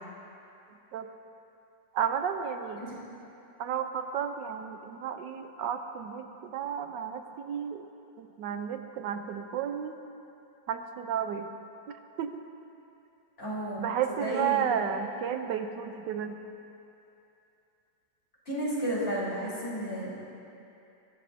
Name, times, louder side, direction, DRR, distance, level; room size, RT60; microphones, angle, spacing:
voice 1, 1.9-2.8 3.6-7.8 8.2-10.0 10.7-11.5 12.2-12.4 13.8-16.4, right 8 dB, 85° right, 7 dB, 1.3 m, -32 dB
voice 2, 13.4-14.7 18.5-20.1, equal, 35° left, -7 dB, 4.1 m, -33 dB
23.0 x 12.5 x 2.7 m, 2.8 s
omnidirectional pair, 1.8 m